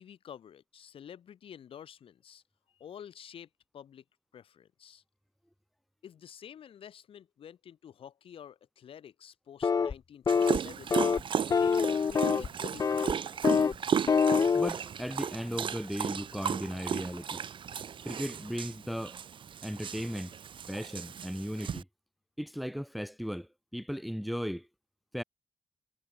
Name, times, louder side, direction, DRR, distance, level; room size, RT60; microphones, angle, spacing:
voice 1, 0.0-2.4 2.7-4.0 4.3-5.0 6.0-11.0 11.5-13.5, left 9 dB, 80° left, 3.2 m, -49 dB
sound 1, 9.6-9.9 10.3-10.6 10.9-11.2 11.5-12.5 12.8-13.1 13.4-13.7 14.1-14.7, left 5 dB, 40° left, 0.5 m, -25 dB
Dog, 10.3-21.8, right 7 dB, 65° right, 1.3 m, -35 dB
voice 2, 14.5-17.4 18.0-19.2 19.6-20.3 20.7-21.8 22.4-24.7 25.1-25.2, equal, ahead, 1.5 m, -36 dB
cardioid pair, 95°, 9 cm